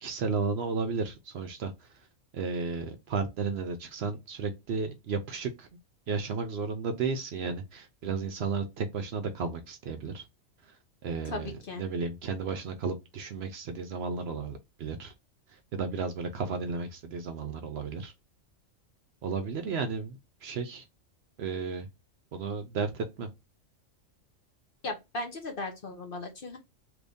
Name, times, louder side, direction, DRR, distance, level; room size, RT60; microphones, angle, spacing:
voice 1, 0.0-1.7 2.3-5.7 6.1-10.2 11.0-15.1 15.7-18.1 19.2-20.8 21.4-21.9 22.3-23.3, right 5 dB, 65° right, 0.7 m, -33 dB
voice 2, 11.2-11.8 24.8-26.6, left 2 dB, 50° left, 0.8 m, -37 dB
3.1 x 2.6 x 3.4 m
omnidirectional pair, 1.3 m